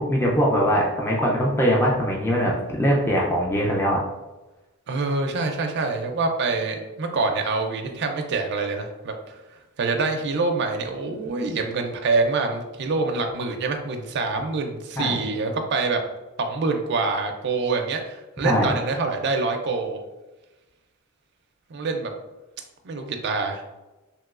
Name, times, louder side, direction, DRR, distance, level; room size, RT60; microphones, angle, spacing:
voice 1, 0.0-4.0 15.0-15.2 18.4-18.7, equal, 10° left, -3 dB, 0.4 m, -21 dB
voice 2, 4.9-9.4 9.8-16.0 16.4-20.0 21.7-22.1 22.8-23.6, right 3 dB, 50° right, 4 dB, 0.4 m, -25 dB
3.0 x 2.9 x 2.4 m, 1.1 s
head